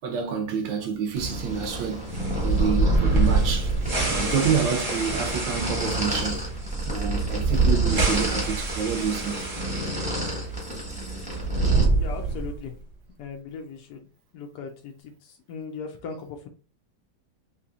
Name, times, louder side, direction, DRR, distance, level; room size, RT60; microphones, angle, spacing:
voice 1, 0.0-2.1 2.4-3.7 4.1-6.5 6.8-9.5, right 6 dB, 75° right, 1.3 m, -28 dB
sound 1, 1.1-11.9, equal, 5° right, 0.7 m, -32 dB
sound 2, 2.1-10.3 10.5-10.6 11.3-12.6, right 3 dB, 35° right, 0.8 m, -25 dB
voice 2, 12.0-12.7 13.2-14.1 14.3-16.5, left 5 dB, 75° left, 0.9 m, -38 dB
3.7 x 2.9 x 2.4 m
omnidirectional pair, 2.1 m